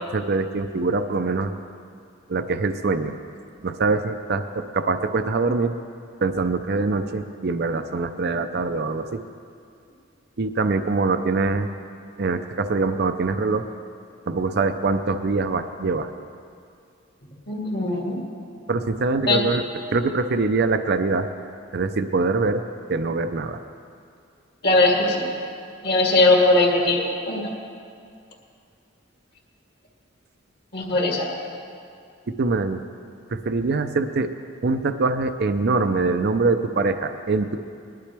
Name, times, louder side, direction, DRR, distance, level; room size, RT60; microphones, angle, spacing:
voice 1, 0.1-1.5 2.3-3.1 3.6-5.7 6.2-9.2 10.4-11.7 12.2-13.6 14.3-16.1 18.7-19.6 19.9-21.3 21.7-22.6 22.9-23.6 32.3-32.8 33.3-34.3 34.6-37.6, right 3 dB, 55° right, 9 dB, 0.5 m, -23 dB
voice 2, 17.5-18.2 19.3-19.4 24.6-25.2 25.8-27.5 30.7-31.3, left 2 dB, 55° left, -2 dB, 2.1 m, -19 dB
20.0 x 11.5 x 3.4 m, 2.3 s
head